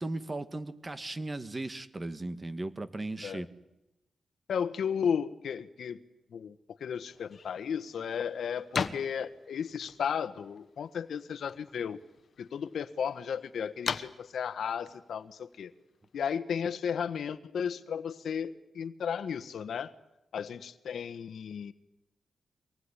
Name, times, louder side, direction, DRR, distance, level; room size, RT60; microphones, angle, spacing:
voice 1, 0.0-3.5, right 2 dB, 25° right, 11 dB, 1.6 m, -37 dB
voice 2, 4.5-6.0 6.3-6.5 6.8-12.0 12.4-15.7 16.1-19.9 20.3-21.7, left 7 dB, 80° left, 12 dB, 1.3 m, -34 dB
sound 1, 7.1-16.3, left 6 dB, 55° left, 1.3 m, -42 dB
25.0 x 19.5 x 10.0 m, 0.93 s
wide cardioid pair, 120°, 0 cm